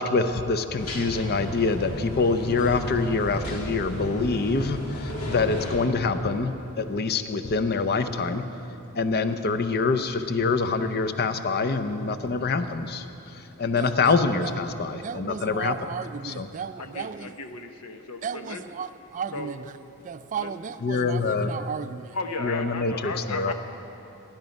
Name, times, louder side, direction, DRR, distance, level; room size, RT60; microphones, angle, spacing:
voice 1, 0.0-8.4 8.9-13.0 13.6-15.7 16.2-16.5 20.8-21.5 22.4-23.5, left 4 dB, 45° left, 0.6 m, -25 dB
sound 1, 0.8-5.9, equal, 70° left, 2.2 m, -33 dB
voice 2, 13.7-14.5 14.9-17.3 18.2-19.8 20.0-22.2, right 6 dB, 35° right, 0.3 m, -35 dB
voice 3, 16.8-18.7 19.3-19.5 20.4-20.5 22.1-23.5, left 3 dB, 85° left, 1.0 m, -35 dB
18.5 x 10.5 x 5.3 m
head